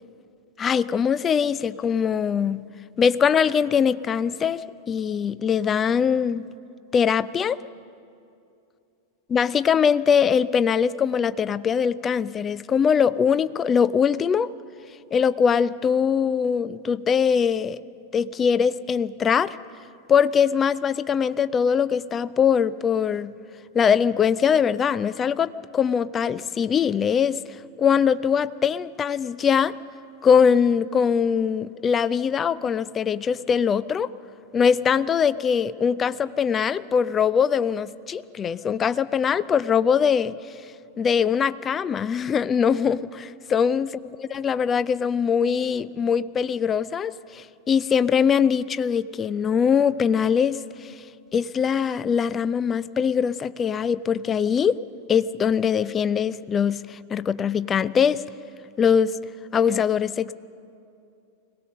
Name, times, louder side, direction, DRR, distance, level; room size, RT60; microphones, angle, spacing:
voice 1, 0.6-2.6 3.0-6.4 6.9-7.6 9.3-14.5 15.1-17.8 18.1-19.6 20.1-23.3 23.7-27.4 27.8-29.7 30.2-34.1 34.5-40.4 41.0-43.9 44.2-50.9 51.3-54.8 55.1-58.2 58.8-59.2 59.5-60.3, left 7 dB, 25° left, 0.5 m, -22 dB
22.0 x 18.0 x 6.6 m
figure-of-eight pair, 90°, 0 cm